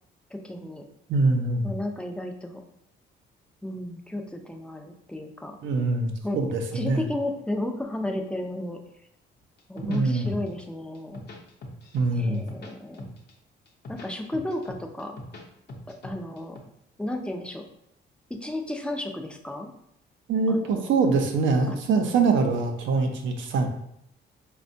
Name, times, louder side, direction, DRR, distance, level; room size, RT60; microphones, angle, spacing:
voice 1, 0.3-0.8 1.6-2.6 3.6-5.6 6.2-6.4 6.7-8.8 9.7-11.2 12.1-13.1 13.9-15.2 15.9-16.6 17.0-17.6 18.4-19.7 20.5-20.7 21.7-21.8, left 1 dB, 5° left, 4 dB, 0.4 m, -33 dB
voice 2, 1.1-1.7 5.6-7.0 9.9-10.3 11.9-12.4 20.3-23.7, right 3 dB, 75° right, 4 dB, 0.6 m, -24 dB
sound 1, 9.6-10.6 10.9-12.1 12.3-13.3 13.7-15.4 15.7-16.6, left 1 dB, 55° left, 0.7 m, -41 dB
4.1 x 2.2 x 2.7 m, 0.75 s
cardioid pair, 90°, 20 cm